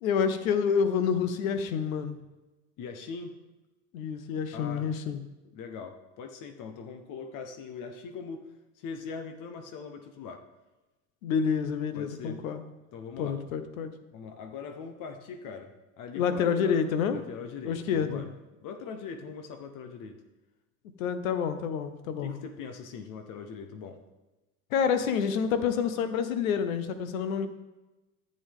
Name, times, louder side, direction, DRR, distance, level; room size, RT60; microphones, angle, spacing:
voice 1, 0.0-2.2 3.9-5.2 11.2-12.6 13.2-13.9 16.1-17.2 17.6-18.2 21.0-22.3 24.7-27.5, left 7 dB, 75° left, 10 dB, 1.0 m, -28 dB
voice 2, 2.8-3.4 4.5-4.9 5.5-8.5 8.8-10.4 11.9-12.4 12.9-13.4 14.1-16.8 17.1-18.3 18.6-20.2 22.2-24.0, left 5 dB, 50° left, 6 dB, 1.1 m, -41 dB
11.0 x 8.0 x 3.6 m, 1.1 s
hypercardioid pair, 90°, 41 cm